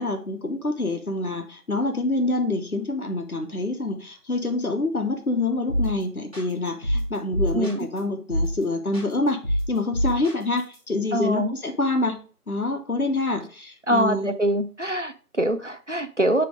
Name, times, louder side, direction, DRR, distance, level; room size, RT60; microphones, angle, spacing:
voice 1, 0.0-12.2 12.5-14.3, left 2 dB, 70° left, 5 dB, 1.2 m, -26 dB
sound 1, 5.7-6.0 6.3-8.0 8.3-8.6 8.9-10.8, equal, 25° right, 2.2 m, -26 dB
voice 2, 11.1-11.5 13.9-16.4, right 1 dB, 55° right, 8 dB, 0.5 m, -24 dB
8.2 x 3.4 x 3.7 m, 0.38 s
figure-of-eight pair, 175°, 46 cm